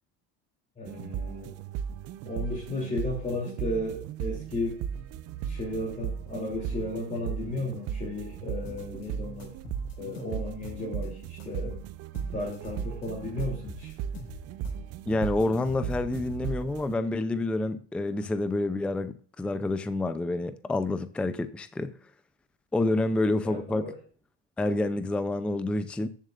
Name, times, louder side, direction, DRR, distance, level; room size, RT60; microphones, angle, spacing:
voice 1, 0.8-1.6 2.3-4.8 5.4-9.5 10.0-11.8 12.3-13.9 23.4-23.9, left 2 dB, 20° left, 2.8 m, -34 dB
sound 1, 0.8-16.9, right 8 dB, 45° right, 0.7 m, -36 dB
sound 2, 8.6-9.1 9.4-11.1 11.4-13.1 13.4-14.9 15.1-16.7, left 4 dB, 65° left, 5.1 m, -45 dB
voice 2, 15.1-21.9 22.7-23.9 24.6-26.1, left 2 dB, 5° left, 0.4 m, -28 dB
14.5 x 7.3 x 2.5 m
supercardioid pair, 130°, 35 cm